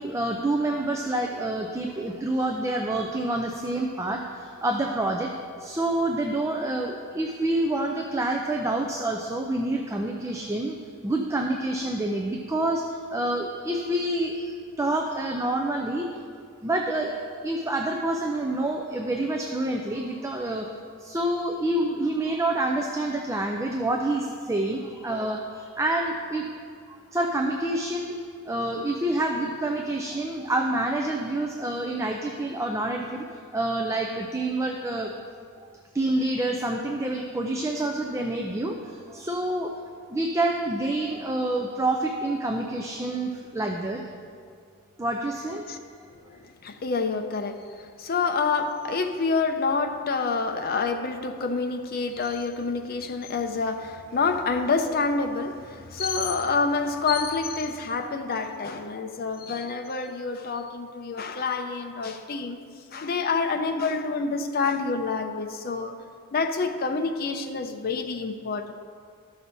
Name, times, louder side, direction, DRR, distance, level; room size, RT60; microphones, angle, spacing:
voice 1, 0.0-5.3 5.6-10.8 11.0-16.1 16.6-20.7 21.0-26.5 27.1-33.2 33.5-35.1 35.6-39.7 40.1-44.0 45.0-45.6, right 1 dB, 15° right, 2 dB, 0.4 m, -27 dB
voice 2, 46.3-62.6 62.9-66.0 66.3-68.7, left 4 dB, 45° left, 6 dB, 0.6 m, -27 dB
13.0 x 6.1 x 4.0 m, 2.2 s
head